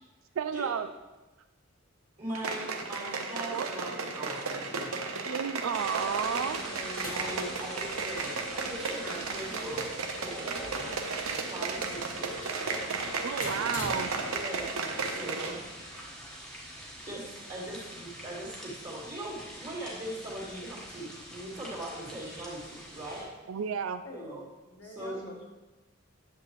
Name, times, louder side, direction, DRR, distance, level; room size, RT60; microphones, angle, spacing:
voice 1, 0.4-0.9 3.5-3.7 5.3-6.6 13.2-14.1 23.5-24.0, right 7 dB, 75° right, 11 dB, 0.3 m, -31 dB
voice 2, 2.2-5.1 7.0-9.9 10.2-13.1 14.3-15.6 17.0-23.3 24.1-24.4 24.8-25.3, right 1 dB, 35° right, -7 dB, 2.4 m, -40 dB
sound 1, 2.3-15.6 15.9-16.0, right 4 dB, 90° right, 0.8 m, -35 dB
sound 2, 5.7-23.2, equal, 5° left, 1.2 m, -45 dB
voice 3, 6.0-9.0 13.6-14.6 24.0-25.5, left 2 dB, 65° left, 1 dB, 1.4 m, -46 dB
sound 3, 6.2-14.7, left 2 dB, 35° left, 1.2 m, -46 dB
9.9 x 7.4 x 3.1 m, 1.1 s
head